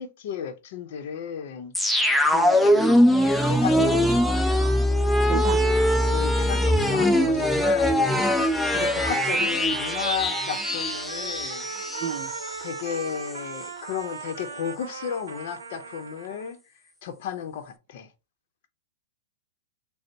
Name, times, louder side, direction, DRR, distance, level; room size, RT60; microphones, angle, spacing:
voice 1, 0.0-1.7 2.2-4.5 6.1-11.6 12.6-16.6 17.0-18.1, left 8 dB, 60° left, 0.7 m, -34 dB
sound 1, 1.8-12.6 12.9-13.0, equal, ahead, 0.5 m, -22 dB
voice 2, 5.3-5.6 6.8-7.5 12.0-12.3, right 8 dB, 45° right, 0.7 m, -32 dB
Trumpet, 8.7-16.6, right 6 dB, 85° right, 0.6 m, -38 dB
3.8 x 2.0 x 4.4 m
hypercardioid pair, 125°, 0 cm